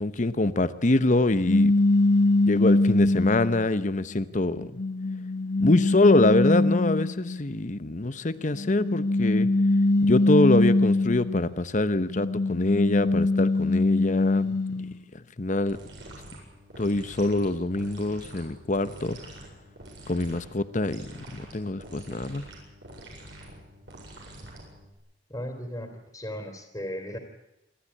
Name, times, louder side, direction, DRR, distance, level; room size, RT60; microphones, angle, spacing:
voice 1, 0.0-1.7 2.5-4.7 5.6-9.5 10.0-14.5 15.4-15.8 16.8-19.2 20.1-22.4, left 2 dB, 40° left, 13 dB, 0.9 m, -24 dB
sound 1, 1.5-3.6 4.3-7.4 8.5-11.5 12.0-14.9, left 2 dB, 65° left, 1.2 m, -23 dB
sound 2, 15.7-25.0, right 1 dB, 75° right, 7.8 m, -46 dB
voice 2, 25.3-27.2, equal, 20° left, 3 dB, 3.0 m, -36 dB
27.0 x 13.0 x 9.8 m, 0.92 s
head